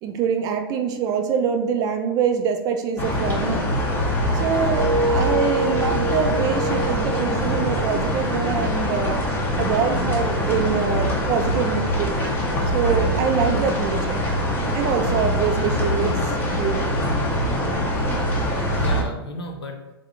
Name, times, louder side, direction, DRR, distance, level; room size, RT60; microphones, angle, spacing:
voice 1, 0.0-3.7 4.3-9.2 9.6-12.1 12.7-14.2 14.7-16.2 16.6-17.0, right 6 dB, 30° right, 5 dB, 0.4 m, -24 dB
sound 1, 3.0-19.0, equal, 15° left, 0.7 m, -23 dB
sound 2, 3.8-8.8 9.2-9.5, right 3 dB, 70° right, 0.7 m, -28 dB
voice 2, 8.6-8.9 18.7-19.9, left 2 dB, 90° left, 2 dB, 0.8 m, -36 dB
3.6 x 2.4 x 3.6 m, 1.0 s
hypercardioid pair, 130°, 13 cm